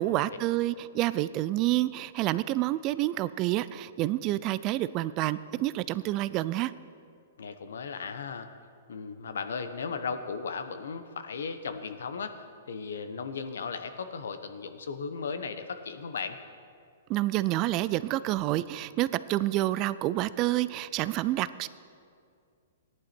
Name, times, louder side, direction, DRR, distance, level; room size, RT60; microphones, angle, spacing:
voice 1, 0.0-6.7 17.1-21.7, right 16 dB, 30° right, 16 dB, 0.3 m, -28 dB
voice 2, 7.4-8.5 8.9-16.4, left 5 dB, 85° left, 9 dB, 1.0 m, -36 dB
15.0 x 10.5 x 4.4 m, 2.3 s
hypercardioid pair, 145°, 0 cm